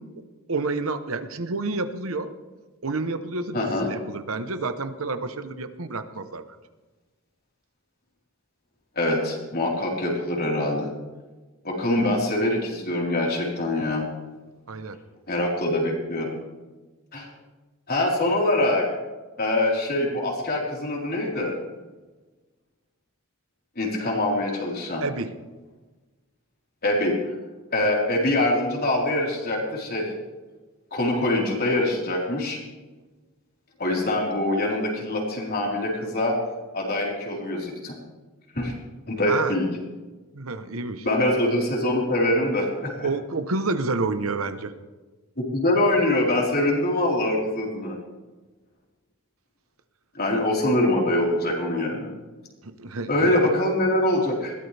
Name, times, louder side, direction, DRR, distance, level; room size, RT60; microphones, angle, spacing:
voice 1, 0.5-2.3 2.8-6.4 14.7-15.0 25.0-25.3 39.3-39.5 40.3-41.0 43.0-44.7 52.6-53.3, right 3 dB, 75° right, 10 dB, 1.0 m, -29 dB
voice 2, 3.5-3.9 9.0-10.9 11.6-14.0 15.3-16.3 17.1-17.3 17.9-18.9 19.4-21.5 23.8-25.0 26.8-27.1 27.7-30.1 30.9-32.6 33.8-36.4 36.7-37.9 38.5-38.7 39.1-39.7 41.0-43.1 45.4-48.0 50.1-52.1 53.1-54.5, left 1 dB, 45° left, -2 dB, 4.3 m, -24 dB
21.0 x 16.5 x 3.5 m, 1.2 s
head